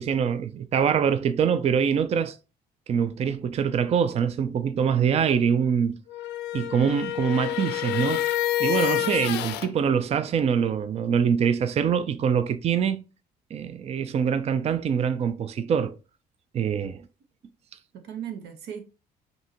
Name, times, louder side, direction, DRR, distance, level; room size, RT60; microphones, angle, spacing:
voice 1, 0.0-2.4 2.9-6.0 6.5-8.3 8.6-13.0 13.5-16.0 16.5-17.1, right 7 dB, 40° right, 0.5 m, -24 dB
sound 1, 6.1-9.7, left 13 dB, 85° left, 0.5 m, -27 dB
voice 2, 9.0-9.3 17.9-18.9, right 9 dB, 75° right, 1.0 m, -38 dB
5.3 x 2.7 x 2.9 m
cardioid pair, 110°, 17 cm